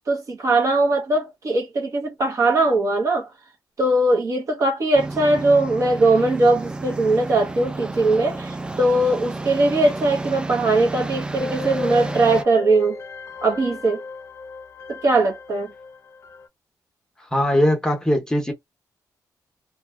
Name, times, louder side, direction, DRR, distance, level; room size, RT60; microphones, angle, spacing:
voice 1, 0.1-3.3 3.8-13.0 13.4-14.0 14.9-15.7, right 2 dB, 50° right, 0.8 m, -20 dB
sound 1, 4.9-12.4, right 2 dB, 15° right, 0.4 m, -31 dB
sound 2, 11.4-16.5, left 4 dB, 45° left, 0.5 m, -35 dB
voice 2, 17.3-18.5, equal, 10° left, 0.8 m, -20 dB
2.6 x 2.2 x 2.3 m
cardioid pair, 80°, 7 cm